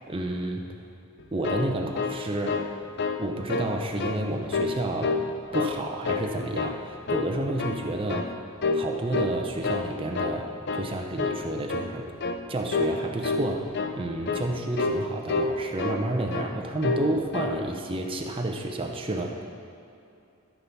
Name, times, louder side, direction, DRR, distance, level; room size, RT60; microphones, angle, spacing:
voice 1, 0.1-0.7 1.3-2.6 3.2-5.2 5.5-8.4 8.7-12.1 12.5-19.4, right 1 dB, 25° right, 2 dB, 0.6 m, -30 dB
sound 1, 1.2-2.7 3.0-3.2 3.5-4.2 4.5-5.3 5.5-6.3 6.6-6.8 7.1-7.8 8.1-8.3 8.6-8.9 9.1-9.9 10.1-10.4 10.7-10.9 11.2-11.4 11.7-11.9 12.2-12.4 12.7-13.0 13.2-13.5 13.7-14.0 14.3-14.5 14.8-15.0 15.3-16.1 16.3-16.5 16.8-17.1 17.3-17.6, left 4 dB, 50° left, 0.5 m, -28 dB
13.0 x 6.1 x 4.0 m, 2.7 s
head